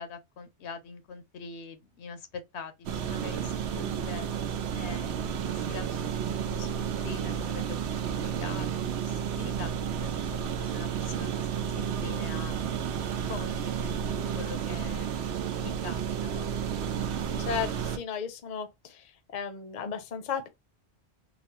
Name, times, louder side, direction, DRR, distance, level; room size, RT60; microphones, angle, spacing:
voice 1, 0.0-4.3 4.7-12.6 13.3-13.9 14.3-15.1 15.6-16.5, left 5 dB, 80° left, 1.0 m, -43 dB
sound 1, 2.9-18.0, right 8 dB, 80° right, 0.9 m, -32 dB
voice 2, 17.5-19.0 19.3-20.5, left 7 dB, 50° left, 0.7 m, -34 dB
3.9 x 2.0 x 2.8 m
omnidirectional pair, 1.1 m